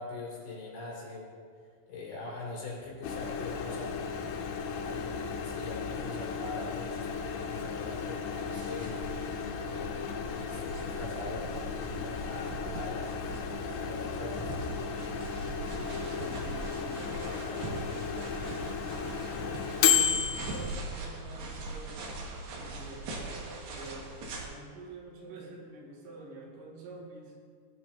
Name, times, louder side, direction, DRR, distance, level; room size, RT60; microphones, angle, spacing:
voice 1, 0.0-1.4 1.9-4.3 4.8-9.3 9.7-14.5, left 3 dB, 55° left, -4 dB, 4.4 m, -42 dB
Microwave oven, 3.0-20.8, left 7 dB, 85° left, 3.5 m, -34 dB
sound 1, 8.5-24.5, right 2 dB, 60° right, 3.0 m, -42 dB
voice 2, 15.5-22.2 22.5-27.5, right 2 dB, 80° right, -4 dB, 4.9 m, -48 dB
19.5 x 11.0 x 2.7 m, 2.2 s
omnidirectional pair, 5.7 m